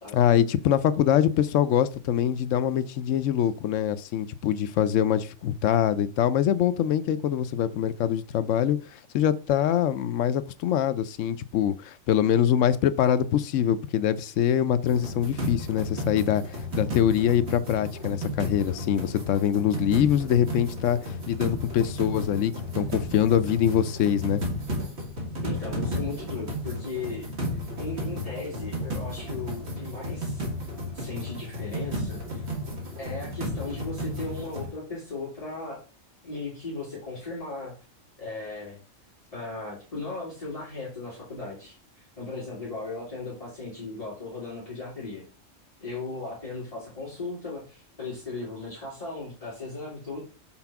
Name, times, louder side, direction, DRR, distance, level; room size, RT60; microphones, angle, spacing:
voice 1, 0.1-24.4, left 10 dB, 75° left, 0.9 m, -24 dB
sound 1, 14.8-34.7, left 1 dB, 55° right, 1.9 m, -33 dB
voice 2, 25.4-27.3 27.8-30.4 30.9-32.4 33.0-35.8 36.2-37.7 38.2-38.8 39.3-45.2 45.8-50.2, left 3 dB, 30° left, 2.6 m, -37 dB
5.9 x 4.3 x 5.8 m
omnidirectional pair, 1.3 m